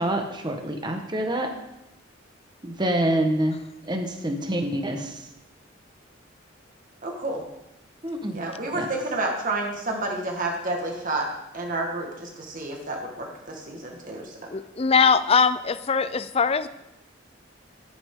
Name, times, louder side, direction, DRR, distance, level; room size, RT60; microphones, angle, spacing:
voice 1, 0.0-1.5 2.6-3.6 3.8-5.2 8.0-8.4 8.7-8.9, right 1 dB, 25° right, 4 dB, 1.3 m, -26 dB
voice 2, 7.0-7.4 8.3-11.3 11.5-14.3, right 2 dB, 45° right, 1 dB, 1.6 m, -30 dB
voice 3, 14.5-16.7, left 5 dB, 30° left, 14 dB, 0.4 m, -21 dB
12.0 x 10.0 x 3.8 m, 0.90 s
head